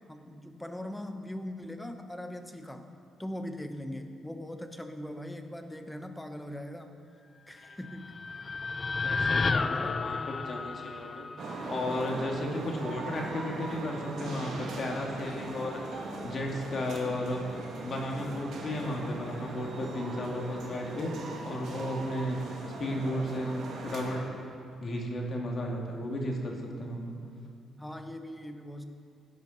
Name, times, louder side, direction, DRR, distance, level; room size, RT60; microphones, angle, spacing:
voice 1, 0.1-2.9 3.2-6.9 7.5-8.1 9.6-10.0 27.8-28.8, left 1 dB, 5° left, 7 dB, 1.1 m, -40 dB
sound 1, 7.7-11.9, left 4 dB, 30° left, 0.4 m, -32 dB
voice 2, 9.0-17.5 17.8-22.4 22.8-24.2 24.8-27.2, left 1 dB, 45° left, 0 dB, 2.1 m, -34 dB
sound 2, 11.4-24.2, right 2 dB, 70° right, 2.2 m, -40 dB
17.0 x 10.5 x 4.1 m, 2.5 s
cardioid pair, 90°, 0 cm